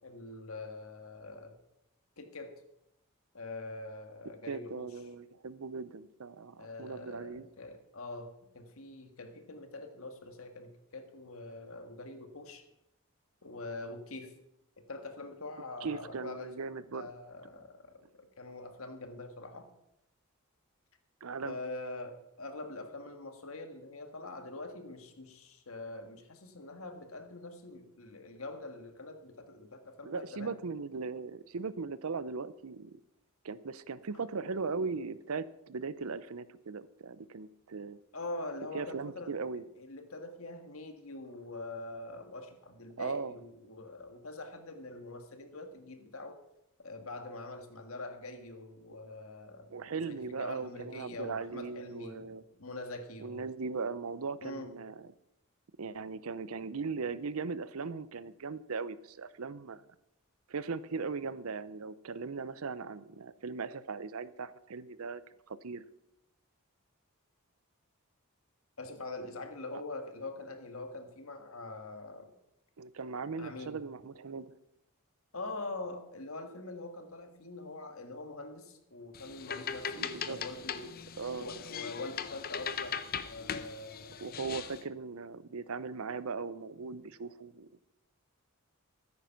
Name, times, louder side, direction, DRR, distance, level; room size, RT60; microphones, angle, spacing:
voice 1, 0.0-1.6 2.2-2.5 3.3-4.9 6.6-8.3 8.5-12.6 13.4-14.3 14.8-16.5 16.9-19.7 21.4-30.6 38.1-39.3 39.8-46.4 46.8-52.3 52.6-53.5 54.4-54.7 68.8-72.3 73.4-73.8 75.3-80.9 81.4-83.0 83.2-84.4, left 2 dB, 70° left, 6 dB, 1.7 m, -44 dB
voice 2, 4.4-7.5 15.8-17.1 21.2-21.6 30.0-33.0 33.4-38.0 38.7-39.6 43.0-43.4 49.7-52.4 53.2-55.1 55.8-59.8 60.5-65.2 65.5-65.8 69.7-69.8 72.8-74.5 79.9-80.4 81.2-81.5 84.2-87.8, right 4 dB, 75° right, 16 dB, 0.6 m, -38 dB
sound 1, 79.1-84.8, left 7 dB, 45° left, 0.7 m, -39 dB
13.5 x 9.6 x 5.8 m, 0.85 s
head